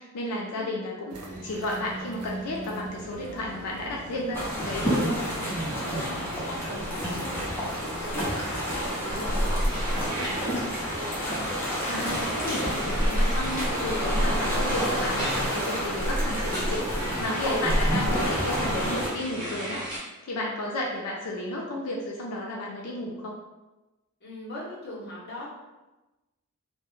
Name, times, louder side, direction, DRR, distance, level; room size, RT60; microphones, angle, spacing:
voice 1, 0.0-5.2 11.9-23.3, left 1 dB, 90° left, -2 dB, 0.4 m, -33 dB
sound 1, 1.1-16.2, right 2 dB, 80° right, 0.4 m, -42 dB
sound 2, 4.3-19.1, equal, 10° left, 0.4 m, -28 dB
voice 2, 5.8-10.8 24.2-25.5, left 1 dB, 45° left, -5 dB, 0.7 m, -41 dB
sound 3, 9.6-20.0, equal, 20° right, 0.8 m, -38 dB
2.1 x 2.0 x 2.9 m, 1.1 s
head